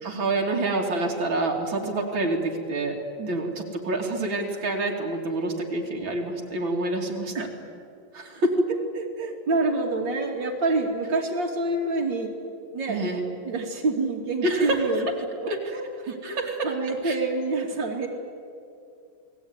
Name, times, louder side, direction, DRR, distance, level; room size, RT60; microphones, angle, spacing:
voice 1, 0.0-3.0 3.3-7.5 8.1-8.7 12.9-13.2 14.4-14.8 15.5-15.6 16.1-16.6 17.0-17.2, right 2 dB, 90° right, 1 dB, 3.5 m, -27 dB
voice 2, 8.9-12.3 12.7-13.2 13.4-15.1 15.4-18.1, right 3 dB, 70° right, 1 dB, 3.2 m, -27 dB
29.5 x 20.0 x 9.6 m, 2.4 s
omnidirectional pair, 2.1 m